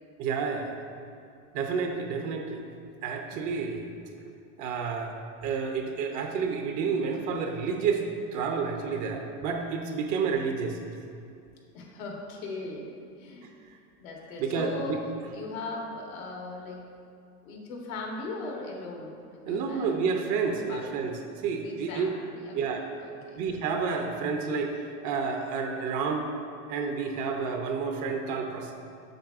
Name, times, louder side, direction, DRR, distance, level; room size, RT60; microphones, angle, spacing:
voice 1, 0.2-0.7 1.5-2.6 3.0-3.9 4.6-5.2 5.4-8.1 8.3-10.8 14.4-15.0 19.5-22.1 22.5-22.8 23.4-26.3 26.7-28.7, right 5 dB, 45° right, 3 dB, 0.6 m, -30 dB
voice 2, 11.7-12.9 13.2-13.5 14.0-15.0 15.3-16.8 17.4-20.0 20.4-20.9 21.6-22.6 23.0-23.4, left 3 dB, 85° left, 0 dB, 1.5 m, -38 dB
7.7 x 6.3 x 2.5 m, 2.4 s
supercardioid pair, 130°, 41 cm